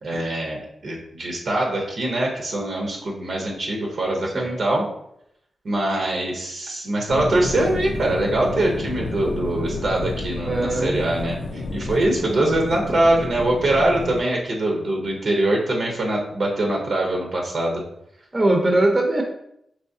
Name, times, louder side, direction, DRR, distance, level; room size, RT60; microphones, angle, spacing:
voice 1, 0.0-4.8 5.6-17.8, right 1 dB, 65° right, 0 dB, 0.8 m, -23 dB
sound 1, 7.1-14.2, left 3 dB, 75° left, 0.4 m, -30 dB
voice 2, 10.4-11.0 18.3-19.2, right 1 dB, 25° right, 1 dB, 0.7 m, -20 dB
4.8 x 3.1 x 2.6 m, 0.75 s
wide cardioid pair, 110°, 0 cm